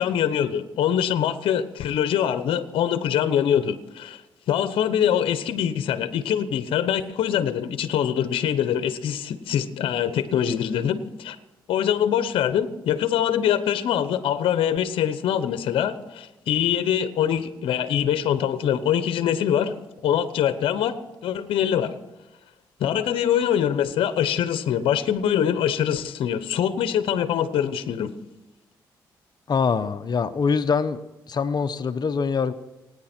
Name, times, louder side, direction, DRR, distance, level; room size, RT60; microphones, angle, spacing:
voice 1, 0.0-4.2 4.5-11.4 11.7-19.8 20.0-20.9 21.2-21.9 22.8-28.1, left 9 dB, 75° left, 12 dB, 1.0 m, -24 dB
voice 2, 29.5-31.0 31.3-32.5, left 5 dB, 50° left, 11 dB, 0.9 m, -24 dB
26.5 x 9.8 x 4.5 m, 1.0 s
supercardioid pair, 55°, 9 cm